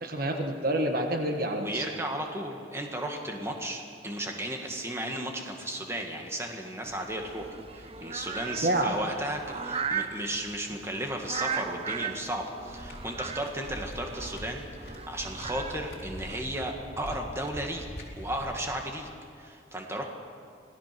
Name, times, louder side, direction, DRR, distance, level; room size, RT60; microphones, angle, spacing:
voice 1, 0.0-1.8 8.5-8.9, right 1 dB, 50° right, 4 dB, 1.5 m, -28 dB
voice 2, 1.6-7.5 7.7-17.8 18.2-19.1 19.3-20.0, right 1 dB, 15° right, 2 dB, 2.1 m, -34 dB
sound 1, 6.8-16.4, right 6 dB, 30° right, 0.9 m, -38 dB
footsteps in flipflops, 12.7-18.8, equal, 60° left, 3.8 m, -43 dB
26.0 x 18.0 x 6.2 m, 2.3 s
head